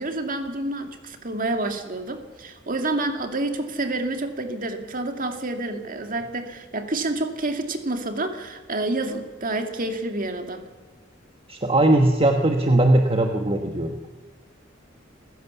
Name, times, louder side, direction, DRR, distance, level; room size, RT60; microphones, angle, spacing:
voice 1, 0.0-10.6, right 2 dB, 45° right, 6 dB, 2.3 m, -28 dB
voice 2, 11.5-14.0, right 1 dB, 30° right, 4 dB, 1.2 m, -19 dB
27.5 x 15.5 x 7.1 m, 1.3 s
head